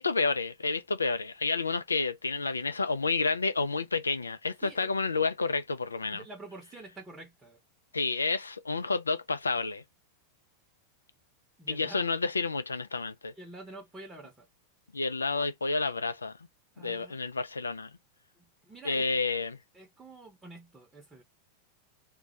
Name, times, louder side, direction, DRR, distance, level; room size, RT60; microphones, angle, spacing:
voice 1, 0.0-6.2 7.9-9.8 11.7-13.3 14.9-16.4 16.8-17.9 18.8-19.6, left 4 dB, 75° left, 0.3 m, -30 dB
voice 2, 6.1-7.6 11.6-12.1 13.3-14.5 16.7-17.2 18.4-19.1 19.7-21.2, right 2 dB, 10° right, 0.8 m, -48 dB
2.2 x 2.1 x 2.7 m
figure-of-eight pair, 90°, 0 cm